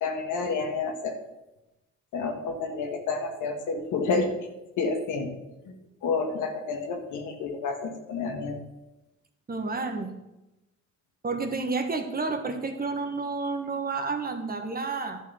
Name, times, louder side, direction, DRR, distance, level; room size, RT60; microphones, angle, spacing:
voice 1, 0.0-1.2 2.1-4.3 4.8-5.3 5.6-5.7 6.0-8.6, left 4 dB, 85° left, 4 dB, 1.6 m, -29 dB
voice 2, 9.5-10.1 11.2-15.2, right 4 dB, 30° right, 5 dB, 1.5 m, -30 dB
11.0 x 4.9 x 7.1 m, 0.97 s
cardioid pair, 90°, 30 cm